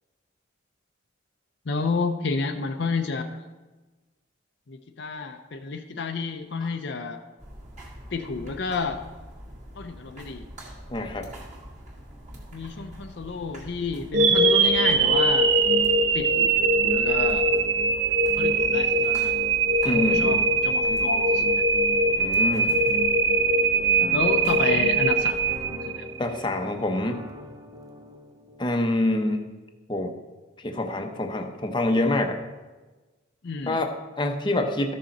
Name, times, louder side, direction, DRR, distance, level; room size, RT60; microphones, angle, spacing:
voice 1, 1.7-3.4 4.7-7.2 8.1-9.0 9.8-10.4 12.5-15.5 16.1-16.5 16.8-17.5 18.4-19.3 19.8-21.7 24.1-25.4 25.7-26.1 33.4-33.8, left 4 dB, 55° left, 6 dB, 0.5 m, -30 dB
sound 1, 7.4-25.7, equal, 35° right, 2.1 m, -44 dB
voice 2, 10.9-11.3 19.8-20.4 22.2-22.8 26.2-27.2 28.6-29.5 29.9-30.1 30.6-32.4 33.7-34.9, left 1 dB, 25° left, 4 dB, 0.7 m, -26 dB
sound 2, 14.1-26.2, right 3 dB, 60° right, 0.6 m, -21 dB
sound 3, 23.4-29.0, equal, 20° right, 0.6 m, -43 dB
13.5 x 6.5 x 4.2 m, 1.2 s
head